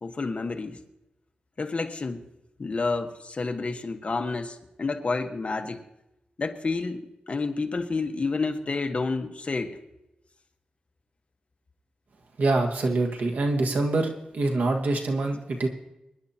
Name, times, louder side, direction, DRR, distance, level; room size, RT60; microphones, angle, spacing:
voice 1, 0.0-0.8 1.6-2.2 2.6-5.8 6.4-9.8, left 3 dB, 50° left, 5 dB, 1.3 m, -29 dB
voice 2, 12.4-15.7, right 2 dB, 85° right, 2 dB, 1.7 m, -25 dB
24.5 x 11.0 x 2.9 m, 0.91 s
wide cardioid pair, 80°, 3 cm